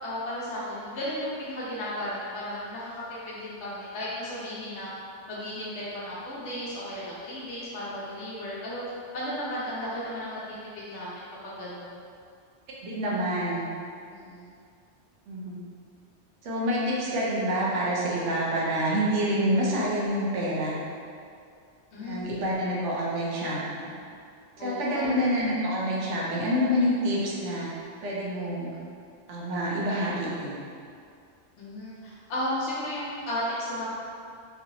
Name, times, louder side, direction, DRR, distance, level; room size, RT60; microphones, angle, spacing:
voice 1, 0.0-4.9 5.3-8.8 9.1-12.0 14.1-14.5 21.9-22.2 24.6-25.1 31.6-33.9, left 1 dB, 80° left, -7 dB, 0.9 m, -34 dB
voice 2, 12.8-13.7 15.3-15.6 16.4-20.7 22.0-24.0 24.6-27.7 28.0-28.7 29.3-30.7, equal, 85° right, -5 dB, 1.0 m, -27 dB
3.2 x 2.8 x 2.6 m, 2.3 s
omnidirectional pair, 1.2 m